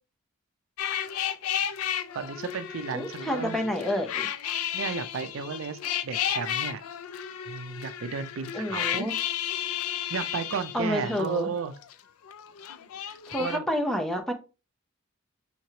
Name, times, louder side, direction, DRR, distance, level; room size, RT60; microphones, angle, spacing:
sound 1, 0.8-11.9 12.2-13.6, left 10 dB, 85° left, 0.4 m, -33 dB
voice 1, 2.1-3.7 4.7-6.8 7.5-9.1 10.1-11.7 13.0-13.6, right 5 dB, 70° right, 0.4 m, -34 dB
voice 2, 2.9-4.3 8.5-9.1 10.7-11.5 13.3-14.3, equal, ahead, 0.6 m, -29 dB
5.7 x 3.1 x 2.8 m
head